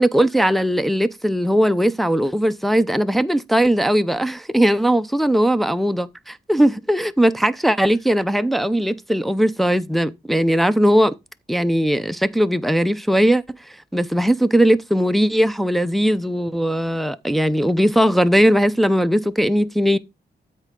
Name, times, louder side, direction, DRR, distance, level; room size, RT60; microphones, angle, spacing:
voice 1, 0.0-11.1 11.5-13.4 13.9-20.0, equal, ahead, 0.6 m, -19 dB
13.0 x 4.5 x 3.8 m
cardioid pair, 80°, 18 cm